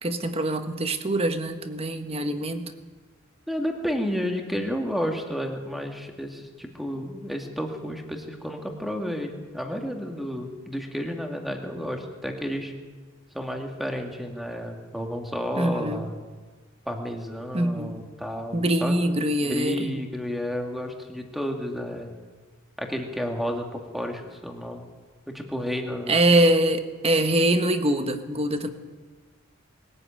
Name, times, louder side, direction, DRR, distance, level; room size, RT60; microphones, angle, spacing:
voice 1, 0.0-2.7 15.6-16.0 17.5-18.1 18.5-19.9 26.1-28.7, right 1 dB, 30° right, 8 dB, 1.5 m, -24 dB
voice 2, 3.5-12.7 13.3-16.2 16.9-18.9 19.4-22.1 22.8-24.8 25.3-26.1, equal, ahead, 3 dB, 2.4 m, -31 dB
22.0 x 14.0 x 9.2 m, 1.4 s
head